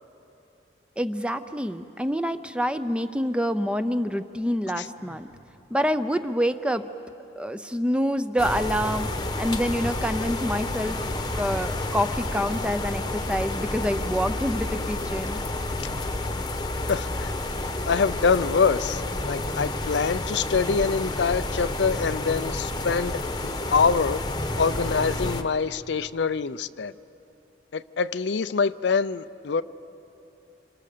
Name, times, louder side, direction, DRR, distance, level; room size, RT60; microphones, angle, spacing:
voice 1, 1.0-5.3 5.7-6.8 7.4-9.1 9.4-11.0 11.3-15.4, equal, 5° right, 11 dB, 0.6 m, -27 dB
Sigh, 5.0-5.5, equal, 70° right, 3.0 m, -52 dB
sound 1, 8.4-25.4, left 2 dB, 25° left, 1.0 m, -30 dB
voice 2, 16.9-17.3 17.9-24.2 24.6-26.9 27.7-29.6, left 5 dB, 70° left, 14 dB, 0.5 m, -25 dB
27.5 x 27.0 x 6.8 m, 2.9 s
head